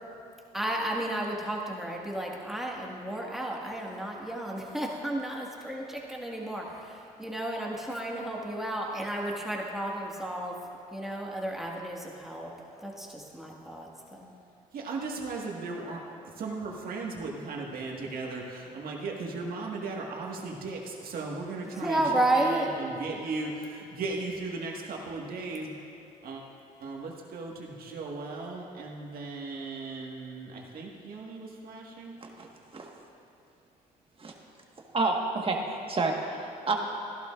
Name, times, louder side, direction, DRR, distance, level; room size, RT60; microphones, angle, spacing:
voice 1, 0.5-10.6 10.9-12.5 12.8-14.3 21.6-23.2, right 1 dB, ahead, -2 dB, 1.9 m, -32 dB
voice 2, 14.7-16.0 16.4-22.0 22.3-25.8 26.2-26.4 26.8-32.2, right 3 dB, 65° right, -1 dB, 1.8 m, -37 dB
voice 3, 34.9-36.7, right 3 dB, 35° right, 1 dB, 1.6 m, -29 dB
15.0 x 11.5 x 2.5 m, 2.8 s
supercardioid pair, 70°, 16 cm